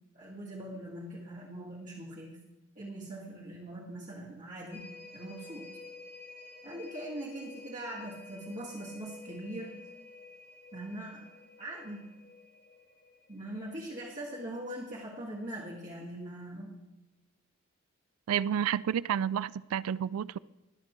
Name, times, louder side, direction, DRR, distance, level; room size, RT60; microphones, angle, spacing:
voice 1, 0.1-2.4 2.8-5.7 6.6-9.8 10.7-11.3 11.6-12.2 13.3-16.8, right 1 dB, 35° right, 1.9 m, -42 dB
sound 1, 4.7-14.5 14.9-15.0, left 3 dB, 35° left, 1.9 m, -51 dB
voice 2, 18.3-20.4, right 9 dB, 85° right, 0.3 m, -30 dB
21.5 x 7.5 x 3.1 m
head